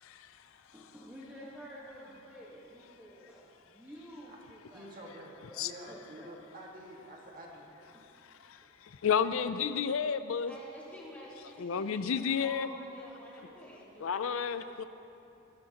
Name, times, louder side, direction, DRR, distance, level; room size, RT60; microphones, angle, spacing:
voice 1, 0.7-5.1 5.5-6.4 7.9-8.1 8.6-9.0, equal, 10° right, -7 dB, 1.3 m, -51 dB
voice 2, 4.7-7.7, right 1 dB, 40° right, -2 dB, 1.8 m, -48 dB
voice 3, 9.0-10.5 11.6-12.7 14.0-14.9, left 7 dB, 70° left, 11 dB, 0.4 m, -30 dB
voice 4, 10.5-14.4, equal, 5° left, -7 dB, 2.9 m, -49 dB
24.5 x 12.5 x 2.9 m, 2.9 s
head